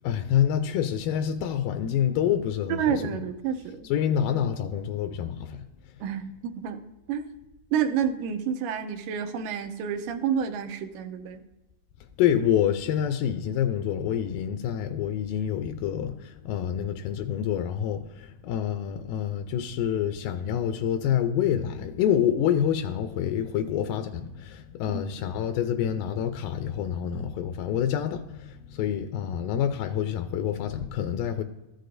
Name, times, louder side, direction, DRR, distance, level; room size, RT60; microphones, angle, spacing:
voice 1, 0.0-3.2 3.8-5.6 12.2-31.4, left 9 dB, 85° left, 2.2 m, -27 dB
voice 2, 2.8-4.1 6.0-6.8 7.1-7.3 7.7-11.4 24.9-25.0, right 7 dB, 85° right, 2.3 m, -29 dB
14.0 x 6.6 x 2.6 m
omnidirectional pair, 3.8 m